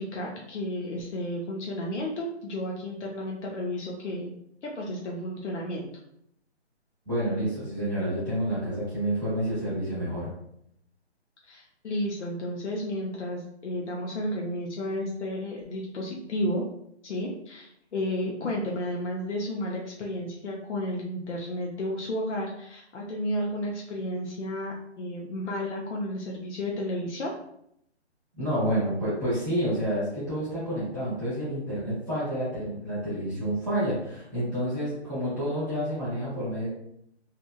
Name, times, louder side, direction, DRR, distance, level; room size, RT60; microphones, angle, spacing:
voice 1, 0.0-4.4 4.6-5.9 11.4-16.7 17.0-27.3, left 1 dB, 90° left, -2 dB, 0.7 m, -32 dB
voice 2, 7.0-10.3 28.4-36.7, equal, 15° right, -13 dB, 0.8 m, -29 dB
2.9 x 2.4 x 2.3 m, 0.73 s
hypercardioid pair, 180°, 34 cm